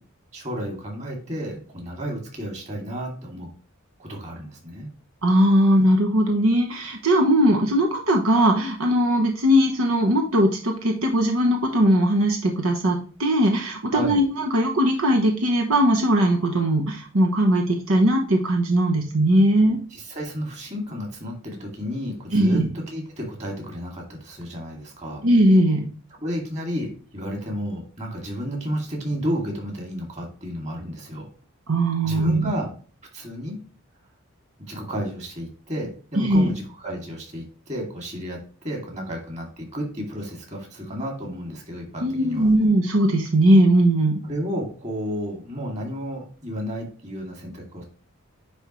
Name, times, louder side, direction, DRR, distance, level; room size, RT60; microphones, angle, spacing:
voice 1, 0.3-3.5 4.0-4.9 13.9-14.2 19.9-25.2 26.2-31.3 32.0-32.7 33.1-33.6 34.7-42.5 44.3-47.8, equal, 35° right, 0 dB, 2.4 m, -32 dB
voice 2, 5.2-19.8 22.3-22.7 25.2-25.8 31.7-32.5 36.2-36.5 42.0-44.2, right 1 dB, 80° right, 2 dB, 1.1 m, -19 dB
9.9 x 3.5 x 3.1 m, 0.39 s
head